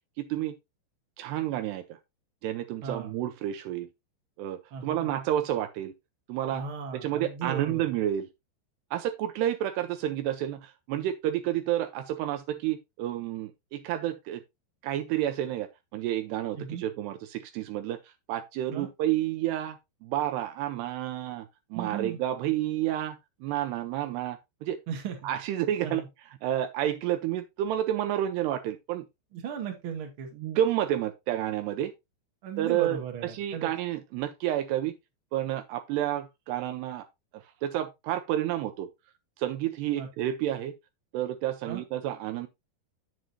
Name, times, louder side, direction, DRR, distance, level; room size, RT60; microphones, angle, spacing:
voice 1, 0.2-0.5 1.2-2.0 2.4-3.9 4.4-5.9 6.3-6.6 6.9-8.3 8.9-14.4 14.8-24.8 25.2-26.0 26.4-29.1 30.4-31.9 32.6-34.9 35.3-37.1 37.3-38.9 39.4-40.7 41.1-42.5, right 12 dB, 80° right, 2.6 m, -30 dB
voice 2, 2.8-3.1 4.7-5.1 6.5-7.8 16.6-16.8 18.7-18.9 21.7-22.2 24.9-25.2 25.8-26.0 29.3-30.3 32.4-33.7 40.0-40.1 41.6-41.8, right 7 dB, 45° right, 1.8 m, -36 dB
9.3 x 7.5 x 2.8 m
omnidirectional pair, 5.1 m